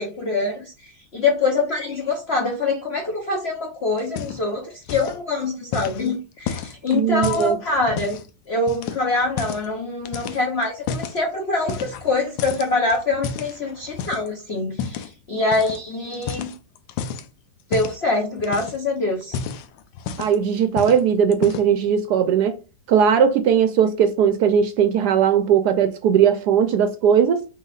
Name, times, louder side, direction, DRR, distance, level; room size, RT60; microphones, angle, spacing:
voice 1, 0.0-8.2 8.5-16.5 17.7-19.4, left 3 dB, 55° left, 0.7 m, -24 dB
sound 1, 4.0-4.6 4.8-5.2 5.7-8.3 8.7-9.7 10.1-11.2 11.7-12.1 12.4-14.3 14.8-15.1 15.5-15.8 16.1-17.3 17.7-18.0 18.4-18.9 19.2-20.4 20.8-21.0 21.3-21.8, left 7 dB, 85° left, 1.3 m, -31 dB
voice 2, 6.9-7.6 20.2-22.6 22.9-27.4, right 8 dB, 70° right, 1.0 m, -18 dB
5.7 x 3.1 x 2.4 m
omnidirectional pair, 2.0 m